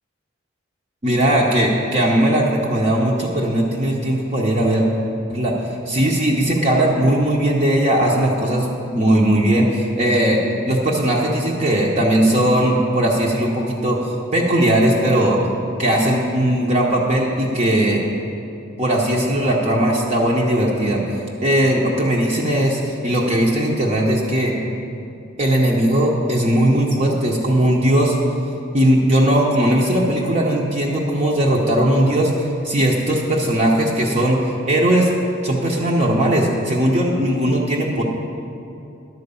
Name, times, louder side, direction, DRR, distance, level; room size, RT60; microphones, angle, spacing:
voice 1, 1.0-4.9 5.3-5.5 5.9-8.7 8.9-10.4 10.7-15.4 15.8-18.0 18.8-21.0 21.4-24.5 25.4-28.2 28.7-35.1 35.4-38.0, right 1 dB, 35° right, -3 dB, 0.7 m, -18 dB
11.0 x 4.5 x 6.8 m, 2.7 s
head